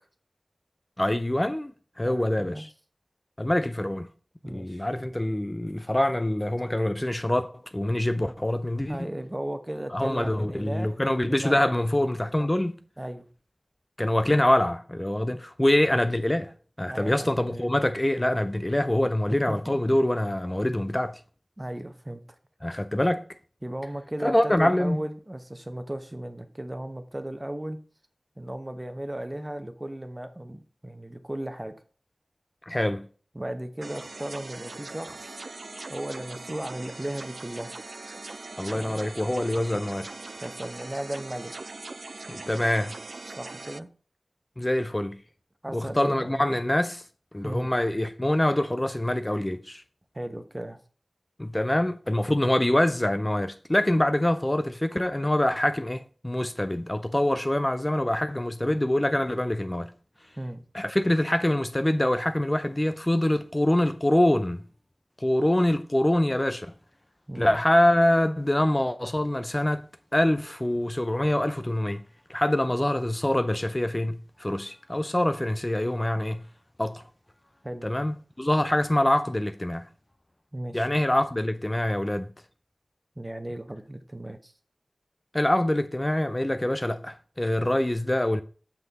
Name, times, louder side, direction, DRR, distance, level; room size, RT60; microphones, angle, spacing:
voice 1, 1.0-2.7 3.4-4.1 4.5-9.0 9.9-12.7 14.0-16.5 16.8-21.2 22.6-23.2 24.2-25.0 32.7-33.1 38.6-40.1 42.3-42.9 44.6-45.2 45.7-47.0 47.3-49.8 51.4-59.9 60.7-64.6 65.2-66.7 67.4-69.9 70.1-72.0 72.3-76.4 76.8-77.0 77.8-79.9 80.7-82.3 85.3-88.4, left 1 dB, 25° left, 0.5 m, -25 dB
voice 2, 2.0-2.6 4.4-4.9 8.9-10.9 11.2-11.6 13.0-13.3 16.9-17.7 19.3-19.8 21.6-22.2 23.6-27.8 28.4-31.7 33.3-35.4 35.9-37.7 38.7-39.0 40.4-41.7 43.3-43.9 45.6-46.6 47.4-47.7 50.1-50.8 60.4-60.6 67.3-67.6 77.6-77.8 80.5-80.9 83.2-84.5, right 1 dB, 25° right, 1.0 m, -36 dB
sound 1, 33.8-43.8, right 3 dB, 70° right, 0.3 m, -41 dB
5.8 x 5.8 x 4.1 m
wide cardioid pair, 45°, 0 cm